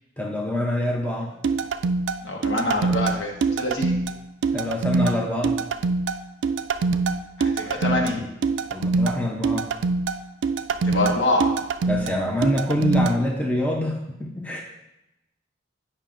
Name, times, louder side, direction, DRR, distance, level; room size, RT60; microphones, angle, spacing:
voice 1, 0.2-1.3 4.5-5.6 8.7-9.7 11.9-14.6, left 1 dB, 10° left, -1 dB, 0.6 m, -25 dB
sound 1, 1.4-13.2, right 4 dB, 70° right, 0.3 m, -24 dB
voice 2, 2.2-4.0 7.4-8.2 10.8-11.5, left 2 dB, 65° left, -1 dB, 1.3 m, -25 dB
8.8 x 5.6 x 2.5 m, 0.91 s
head